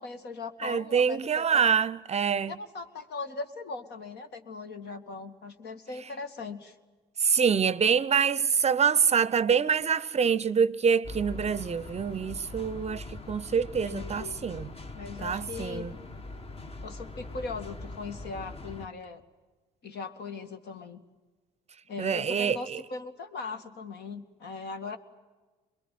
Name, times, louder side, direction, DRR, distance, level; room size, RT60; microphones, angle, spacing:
voice 1, 0.0-1.6 2.5-6.8 13.8-14.4 14.9-16.0 16.8-19.2 19.8-21.0 21.9-25.0, left 4 dB, 60° left, 2.4 m, -39 dB
voice 2, 0.6-2.5 7.2-14.7 15.2-15.9 22.0-22.8, right 6 dB, 35° right, 0.7 m, -26 dB
sound 1, 11.0-18.9, left 2 dB, 30° left, 1.6 m, -42 dB
23.0 x 22.0 x 9.5 m
supercardioid pair, 70°, 19 cm